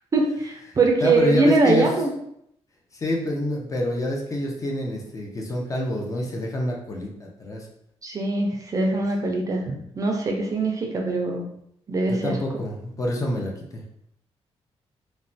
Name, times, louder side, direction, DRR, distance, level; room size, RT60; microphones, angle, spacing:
voice 1, 0.1-2.1 8.0-11.4 11.9-12.3, right 3 dB, 30° right, 1 dB, 0.4 m, -22 dB
voice 2, 0.7-1.9 2.9-7.7 12.1-13.8, left 1 dB, 30° left, 0 dB, 0.5 m, -27 dB
3.1 x 2.1 x 2.6 m, 0.73 s
wide cardioid pair, 165°, 11 cm